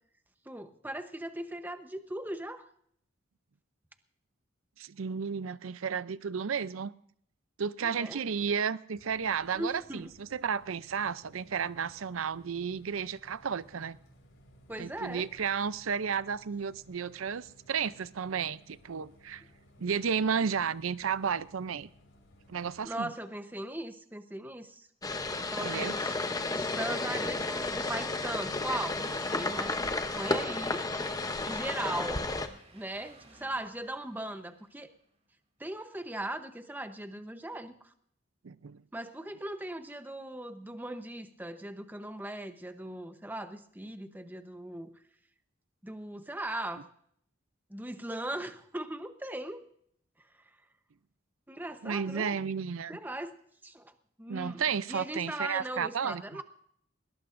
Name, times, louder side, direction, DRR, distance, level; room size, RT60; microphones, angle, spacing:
voice 1, 0.5-2.7 7.8-8.2 9.5-10.1 14.7-15.3 22.8-24.9 25.5-26.1 26.5-29.8 30.1-30.9 31.4-34.9 35.6-37.9 38.9-44.9 45.8-46.9 47.7-49.6 51.5-52.4 52.9-53.4 53.6-53.9 54.2-56.4, right 1 dB, 10° right, 8 dB, 0.9 m, -39 dB
voice 2, 4.8-6.9 7.6-14.0 14.8-19.4 19.8-21.9 22.5-23.1 25.6-25.9 38.4-38.8 51.8-53.0 54.3-56.4, right 6 dB, 90° right, 17 dB, 0.5 m, -33 dB
Bus, 8.9-22.8, left 1 dB, 70° left, 5.3 m, -60 dB
sound 1, 25.0-32.5, left 2 dB, 20° left, 0.8 m, -32 dB
Train, 26.4-35.2, right 2 dB, 30° right, 3.0 m, -59 dB
20.5 x 19.0 x 2.6 m, 0.64 s
head